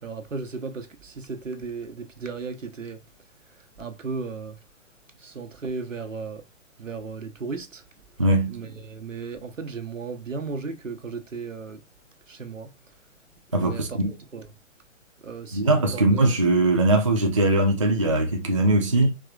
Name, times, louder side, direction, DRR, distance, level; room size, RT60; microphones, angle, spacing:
voice 1, 0.0-3.0 3.5-4.6 5.2-6.4 6.8-7.8 8.5-11.8 12.3-12.7 13.6-14.5 15.2-16.3, right 4 dB, 75° right, 1.0 m, -35 dB
voice 2, 8.2-8.6 13.5-14.1 15.5-19.1, right 2 dB, 25° right, 0.3 m, -21 dB
4.9 x 3.2 x 2.4 m
figure-of-eight pair, 130°, 39 cm